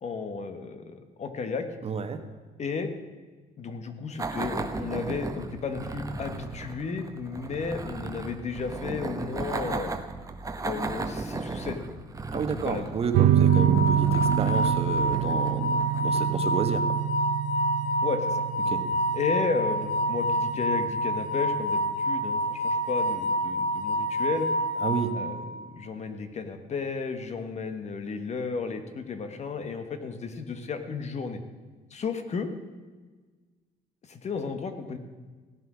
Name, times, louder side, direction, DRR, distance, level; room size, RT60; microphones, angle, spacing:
voice 1, 0.0-1.7 2.6-2.9 3.6-9.9 10.6-11.8 12.3-12.9 18.0-18.4 19.1-24.5 25.1-31.4 31.9-32.5 34.1-35.0, left 5 dB, 40° left, 8 dB, 1.3 m, -33 dB
voice 2, 1.8-2.2 12.3-16.9 18.7-18.8 24.8-25.1, right 5 dB, 35° right, 7 dB, 1.3 m, -31 dB
sound 1, 4.2-16.4, right 3 dB, 20° right, 1.0 m, -36 dB
sound 2, 13.1-24.1, right 10 dB, 70° right, 0.6 m, -27 dB
sound 3, 13.5-25.7, equal, 85° left, 1.2 m, -28 dB
16.0 x 7.7 x 6.2 m, 1.4 s
cardioid pair, 110°, 17 cm